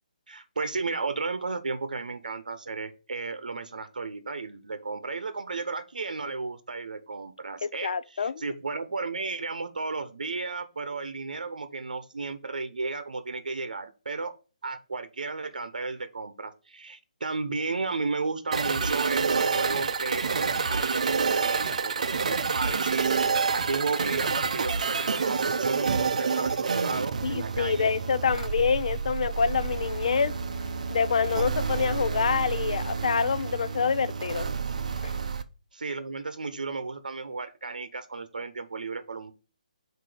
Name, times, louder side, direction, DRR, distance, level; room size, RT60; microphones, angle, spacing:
voice 1, 0.3-14.3 14.6-23.1 23.5-27.9 35.7-39.3, right 4 dB, 90° right, 0.8 m, -33 dB
voice 2, 7.6-8.3 27.2-30.3 30.9-34.5 35.0-35.1, left 6 dB, 55° left, 0.4 m, -26 dB
sound 1, 18.5-35.4, right 5 dB, 60° right, 0.6 m, -28 dB
7.6 x 2.7 x 4.9 m
hypercardioid pair, 165°, 4 cm